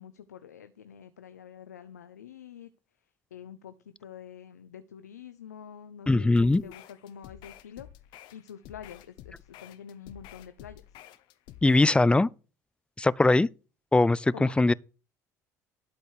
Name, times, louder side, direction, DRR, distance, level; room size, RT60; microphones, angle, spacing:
voice 1, 0.0-2.7 3.3-7.9 8.3-10.8 14.3-14.5, left 8 dB, 90° left, 0.6 m, -46 dB
voice 2, 6.1-6.6 11.6-12.3 13.0-13.5 13.9-14.7, left 2 dB, 10° left, 0.4 m, -21 dB
sound 1, 6.4-12.0, left 12 dB, 65° left, 1.0 m, -50 dB
12.0 x 5.2 x 6.5 m
hypercardioid pair, 60°, 9 cm